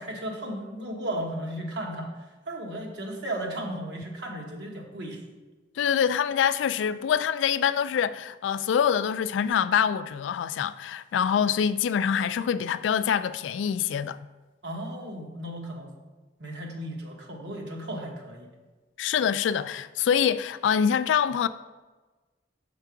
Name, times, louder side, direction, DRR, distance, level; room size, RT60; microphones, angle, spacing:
voice 1, 0.0-2.1 2.5-5.2 14.6-15.9 16.4-18.5, right 1 dB, 70° right, 1.3 m, -35 dB
voice 2, 5.8-14.2 19.0-21.5, left 8 dB, 85° left, 0.3 m, -25 dB
6.8 x 4.5 x 4.6 m
head